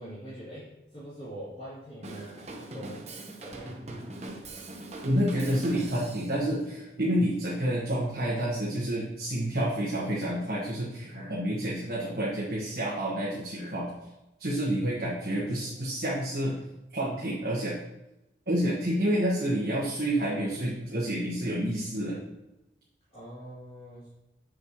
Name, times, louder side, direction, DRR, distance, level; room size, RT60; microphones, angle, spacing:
voice 1, 0.0-3.1 3.4-3.8 15.1-15.9 23.1-24.1, equal, 35° left, -11 dB, 2.8 m, -44 dB
Drum kit / Drum, 2.0-6.4, right 2 dB, 40° right, 1.0 m, -41 dB
voice 2, 5.0-13.9 14.4-16.6 16.9-17.8 18.5-22.2, right 1 dB, 55° right, -6 dB, 1.4 m, -29 dB
7.9 x 6.6 x 3.0 m, 0.96 s
head